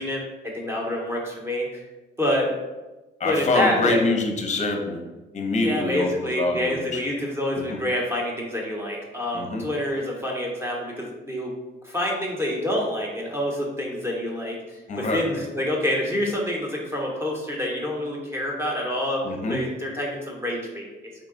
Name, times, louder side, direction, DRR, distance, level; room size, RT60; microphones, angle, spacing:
voice 1, 0.0-1.8 2.2-2.5 3.2-4.0 5.6-11.5 11.8-20.9, left 1 dB, 10° right, -2 dB, 0.9 m, -27 dB
voice 2, 3.2-5.0 5.3-7.0 7.7-7.8 9.3-9.6 14.9-15.2 19.2-19.6, left 2 dB, 35° left, 4 dB, 0.7 m, -25 dB
3.8 x 2.3 x 3.7 m, 1.1 s
cardioid pair, 90°, 20 cm